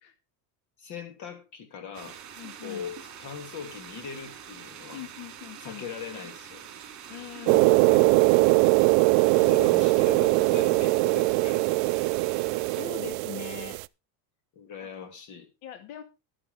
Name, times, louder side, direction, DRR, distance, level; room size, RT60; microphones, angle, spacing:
voice 1, 0.8-2.2 2.6-5.0 5.6-6.6 9.3-12.1 14.5-15.5, left 7 dB, 40° left, 7 dB, 2.9 m, -40 dB
sound 1, 1.9-12.9, right 8 dB, 40° right, 4.5 m, -45 dB
voice 2, 2.4-2.8 4.9-5.8 7.1-8.2 12.4-13.8 14.8-14.9 15.6-16.0, left 11 dB, 70° left, 9 dB, 1.9 m, -42 dB
sound 2, 7.5-13.8, right 24 dB, 70° right, 0.5 m, -21 dB
12.5 x 11.0 x 3.5 m, 0.27 s
cardioid pair, 160°, 43 cm